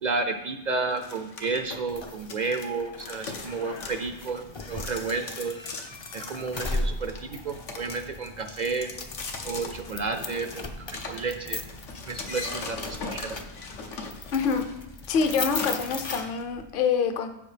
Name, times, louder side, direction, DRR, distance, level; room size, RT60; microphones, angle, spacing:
voice 1, 0.0-5.6 6.1-8.9 9.4-11.6 12.1-13.4, right 4 dB, 55° right, 7 dB, 0.5 m, -31 dB
sound 1, 1.0-2.7 3.0-16.4, left 4 dB, 85° left, 1.4 m, -39 dB
sound 2, 1.7-16.7, left 2 dB, 35° left, 0.4 m, -38 dB
voice 2, 14.3-14.7 15.1-17.3, left 6 dB, 50° left, 7 dB, 0.8 m, -25 dB
7.2 x 6.3 x 5.0 m, 0.88 s
omnidirectional pair, 1.2 m